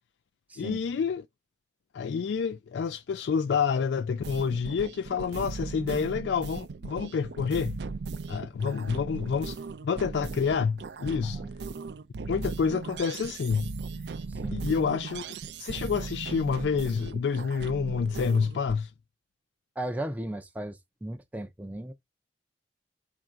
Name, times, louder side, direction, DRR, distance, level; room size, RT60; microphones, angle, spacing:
voice 1, 0.6-1.2 1.9-7.8 8.3-11.4 12.3-13.7 14.5-15.2 15.6-18.9, left 6 dB, 80° left, 0.3 m, -28 dB
sound 1, 4.2-18.7, right 4 dB, 70° right, 0.4 m, -38 dB
voice 2, 14.3-14.6 19.8-21.9, right 1 dB, 10° right, 0.4 m, -36 dB
4.5 x 2.6 x 4.3 m
head